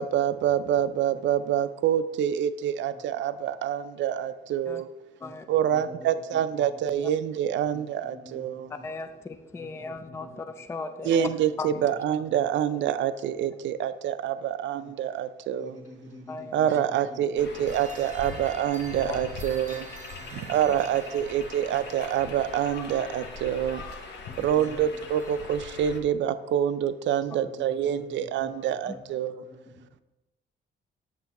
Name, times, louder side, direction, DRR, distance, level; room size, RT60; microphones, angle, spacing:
voice 1, 0.0-4.9 5.5-8.7 11.0-15.8 16.5-19.9 20.3-23.8 24.4-29.4, right 10 dB, 70° right, 13 dB, 0.4 m, -26 dB
voice 2, 2.9-3.2 5.2-5.3 5.7-6.9 7.7-7.8 8.1-8.8 9.5-10.4 11.0-11.3 11.7-11.9 12.3-12.4 14.8-14.9 15.6-17.7 18.9-20.4 21.1-21.2 24.3-24.9 27.4-30.0, left 1 dB, 40° left, -4 dB, 1.4 m, -48 dB
voice 3, 8.8-11.3 11.6-11.7 16.3-16.7 28.9-29.0, left 3 dB, 15° left, 9 dB, 0.3 m, -37 dB
sound 1, 17.4-26.0, left 3 dB, 65° left, 0.9 m, -41 dB
sound 2, 17.7-25.4, right 4 dB, 35° right, 0.8 m, -49 dB
7.3 x 5.7 x 3.0 m, 1.0 s
cardioid pair, 90°, 20 cm